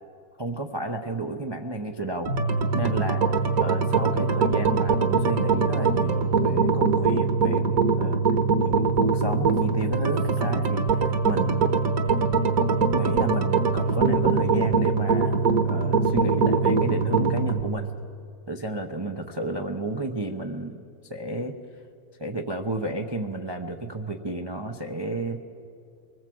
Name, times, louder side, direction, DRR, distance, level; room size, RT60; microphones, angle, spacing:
voice 1, 0.4-2.3 2.7-3.3 3.6-8.2 8.6-11.7 12.9-17.9 18.5-20.8 21.1-21.5 22.2-25.4, right 2 dB, 30° right, 3 dB, 0.4 m, -31 dB
sound 1, 2.3-17.6, right 4 dB, 50° right, 1.6 m, -23 dB
24.0 x 20.0 x 7.8 m, 2.4 s
omnidirectional pair, 2.1 m